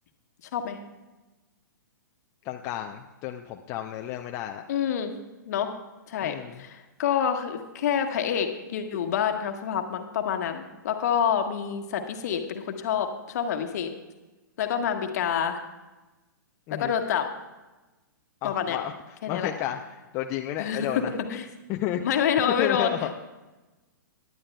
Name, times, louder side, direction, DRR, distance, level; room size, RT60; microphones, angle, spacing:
voice 1, 2.5-4.6 6.2-6.6 16.7-16.9 18.4-18.9 19.3-19.8 20.1-21.1 21.7-22.0 22.6-23.1, left 12 dB, 30° left, 4 dB, 0.5 m, -31 dB
voice 2, 4.7-5.1 5.5-5.7 6.1-13.9 14.6-15.6 16.7-17.3 18.4-18.8 19.2-19.5 20.6-21.0 21.3-21.5 22.0-22.9, left 8 dB, 55° left, 6 dB, 1.3 m, -27 dB
19.5 x 11.0 x 2.3 m, 1.1 s
figure-of-eight pair, 115°, 11 cm